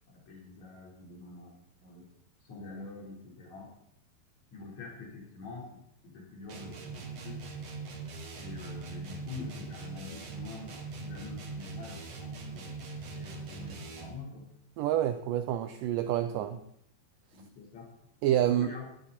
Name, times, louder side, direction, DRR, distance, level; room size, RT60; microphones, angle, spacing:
voice 1, 0.1-1.6 1.8-2.1 2.4-3.7 4.5-7.4 8.3-14.5 16.2-16.6 17.3-17.9 18.3-18.9, left 4 dB, 45° left, -2 dB, 5.3 m, -46 dB
sound 1, 6.5-14.3, right 3 dB, 45° right, 2.6 m, -41 dB
voice 2, 14.8-16.6 18.2-18.7, right 11 dB, 85° right, 9 dB, 1.9 m, -28 dB
17.5 x 11.5 x 4.3 m, 0.74 s
omnidirectional pair, 4.7 m